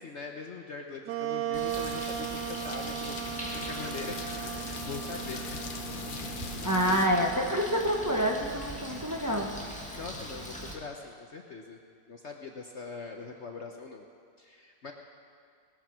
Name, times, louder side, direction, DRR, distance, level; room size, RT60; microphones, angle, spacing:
voice 1, 0.0-4.3 4.6-5.8 6.9-7.3 9.9-11.8 12.1-14.0 14.4-14.9, left 4 dB, 50° left, 2 dB, 0.9 m, -42 dB
Wind instrument woodwind instrument, 1.1-8.5, right 12 dB, 75° right, 1.1 m, -38 dB
Bird, 1.5-10.7, equal, 5° left, 1.5 m, -42 dB
sound 1, 1.7-7.1, left 6 dB, 85° left, 0.4 m, -41 dB
voice 2, 6.6-9.5, equal, 15° right, 0 dB, 0.9 m, -27 dB
19.5 x 8.9 x 6.2 m, 2.3 s
omnidirectional pair, 1.9 m